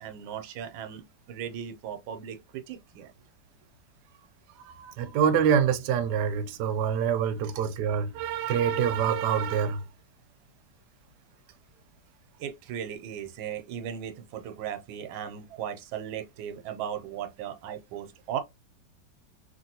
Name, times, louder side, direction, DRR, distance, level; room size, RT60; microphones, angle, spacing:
voice 1, 0.0-3.1 7.4-7.5 12.4-18.4, right 9 dB, 90° right, 1.4 m, -37 dB
voice 2, 4.6-9.8, right 8 dB, 70° right, 1.0 m, -26 dB
2.9 x 2.9 x 2.7 m
omnidirectional pair, 2.1 m